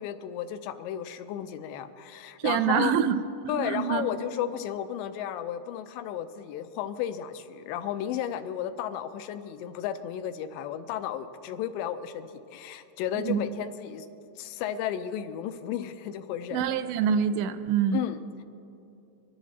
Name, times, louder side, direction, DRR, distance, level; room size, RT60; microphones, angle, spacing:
voice 1, 0.0-2.9 3.5-14.1 14.4-16.7 17.9-18.4, left 10 dB, 85° left, 10 dB, 2.8 m, -33 dB
voice 2, 2.4-3.2 3.4-4.1 13.2-13.4 16.5-18.0, right 8 dB, 85° right, 11 dB, 2.7 m, -26 dB
24.5 x 11.0 x 4.1 m, 2.7 s
omnidirectional pair, 5.1 m